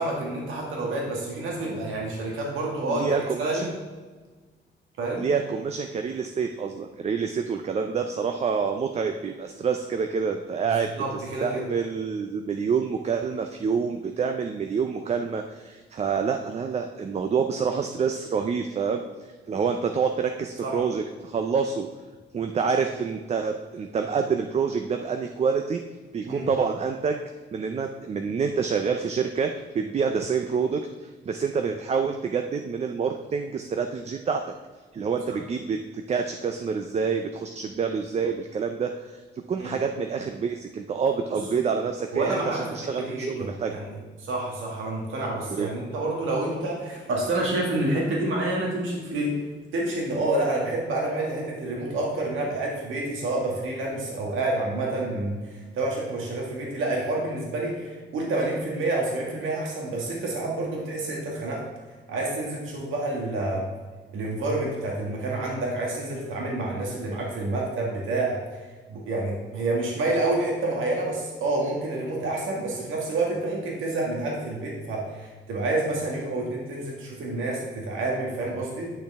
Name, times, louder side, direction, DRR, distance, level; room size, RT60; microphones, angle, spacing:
voice 1, 0.0-3.7 5.0-5.3 10.6-11.7 20.6-20.8 26.3-26.5 35.3-35.4 39.6-39.7 42.1-49.4 49.7-61.6 62.1-63.7 64.1-68.4 68.9-78.9, right 2 dB, 90° right, -2 dB, 1.9 m, -28 dB
voice 2, 2.9-3.7 5.2-19.0 19.5-21.9 22.3-25.8 26.1-27.2 27.5-34.5 34.9-39.2 39.5-43.8 45.5-45.7, right 6 dB, 35° right, 5 dB, 0.5 m, -27 dB
10.0 x 6.3 x 3.5 m, 1.4 s
cardioid pair, 140°, 20 cm